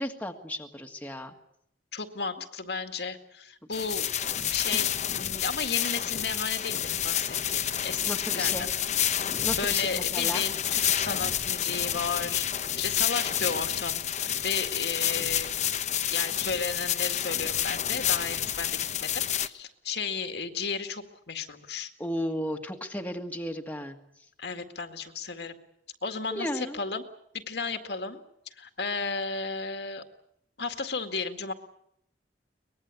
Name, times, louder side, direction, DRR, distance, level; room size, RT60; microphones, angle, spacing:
voice 1, 0.0-1.3 4.7-4.8 8.1-8.7 9.4-10.4 22.0-24.0 26.3-26.8, equal, 10° left, 3 dB, 1.8 m, -34 dB
voice 2, 1.9-4.1 4.5-8.0 8.3-8.7 9.6-12.4 12.8-15.6 16.1-21.9 24.4-25.5 26.0-27.0 27.3-28.2 28.6-30.0 30.6-31.5, left 4 dB, 65° left, 6 dB, 2.0 m, -34 dB
sound 1, 3.7-19.5, left 10 dB, 40° left, 0.9 m, -29 dB
23.5 x 20.5 x 8.5 m, 0.74 s
head